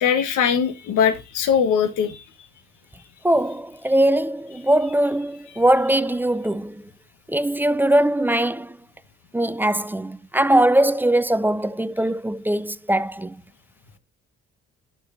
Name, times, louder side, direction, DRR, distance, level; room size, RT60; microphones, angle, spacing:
voice 1, 0.0-2.2, left 7 dB, 85° left, 1.3 m, -21 dB
voice 2, 3.2-6.8 7.3-8.8 9.3-13.3, right 1 dB, 5° right, 0.3 m, -21 dB
11.5 x 6.1 x 2.5 m
cardioid pair, 90°, 30 cm